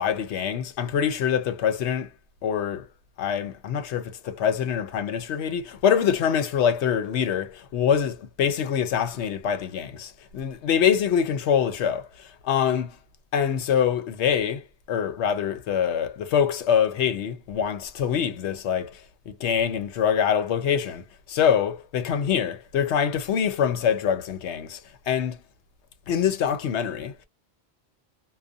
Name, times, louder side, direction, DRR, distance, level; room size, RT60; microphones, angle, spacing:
voice 1, 0.0-2.1 2.4-2.9 3.2-12.9 13.3-19.0 19.3-24.8 25.1-25.4 26.1-27.1, left 8 dB, 90° left, 0.9 m, -25 dB
2.4 x 2.2 x 2.5 m
omnidirectional pair, 1.1 m